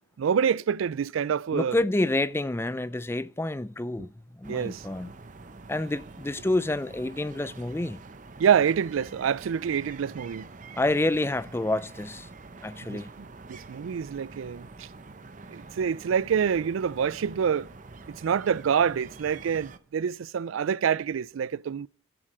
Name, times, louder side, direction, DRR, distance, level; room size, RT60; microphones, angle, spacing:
voice 1, 0.2-1.8 4.5-4.8 8.4-10.5 12.9-14.9 15.5-17.7 18.2-21.9, right 7 dB, 90° right, 0.4 m, -26 dB
voice 2, 1.5-4.1 4.3-5.1 5.7-8.0 10.8-12.3 12.6-13.1, left 2 dB, 10° left, 0.4 m, -28 dB
sound 1, 4.4-19.8, right 3 dB, 40° right, 0.7 m, -46 dB
11.0 x 7.4 x 4.8 m
head